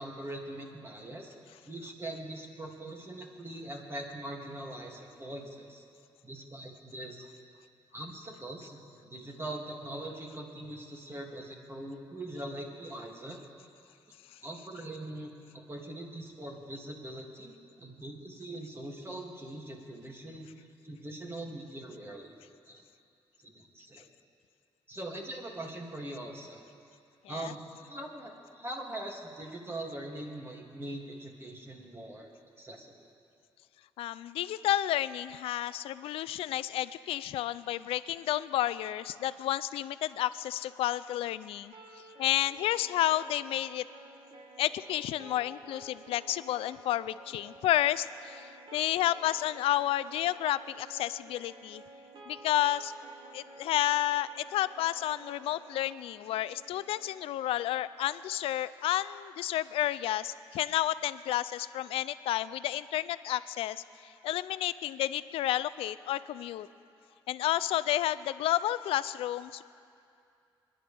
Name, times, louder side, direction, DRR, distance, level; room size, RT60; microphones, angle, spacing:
voice 1, 0.0-1.3 1.6-5.8 6.2-7.3 7.9-13.4 14.4-17.5 17.8-22.3 22.7-22.8 23.4-24.0 24.9-26.7 27.3-32.3 32.6-32.9, right 1 dB, 25° right, 0 dB, 2.4 m, -42 dB
voice 2, 34.0-41.7 42.2-43.8 44.6-51.8 52.3-52.9 53.3-66.7 67.3-69.6, left 13 dB, 90° left, 16 dB, 0.4 m, -31 dB
sound 1, 41.7-57.8, right 2 dB, 60° right, 1.7 m, -53 dB
25.5 x 11.0 x 3.4 m, 2.5 s
cardioid pair, 70°, 9 cm